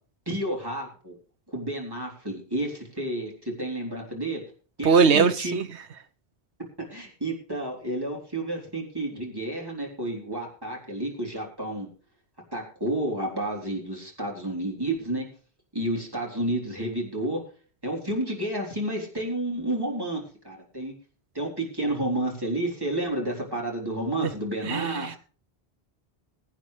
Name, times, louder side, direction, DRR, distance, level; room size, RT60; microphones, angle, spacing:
voice 1, 0.3-1.2 1.5-4.4 4.8-5.5 6.9-11.9 12.5-15.3 15.7-17.4 17.8-20.9 21.3-25.2, right 1 dB, 20° right, 3.8 m, -30 dB
voice 2, 4.8-5.7 24.6-25.2, right 5 dB, 85° right, 1.3 m, -21 dB
22.0 x 8.9 x 3.3 m
omnidirectional pair, 1.1 m